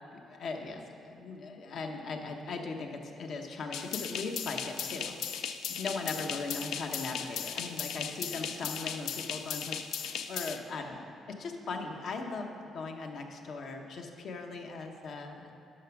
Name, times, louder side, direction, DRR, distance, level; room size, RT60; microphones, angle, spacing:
voice 1, 0.1-5.2 5.7-11.0 11.3-15.5, left 3 dB, 65° left, 3 dB, 1.0 m, -39 dB
sound 1, 3.7-10.6, left 8 dB, 85° left, 0.4 m, -37 dB
9.2 x 6.1 x 6.0 m, 2.6 s
cardioid pair, 90°, 0 cm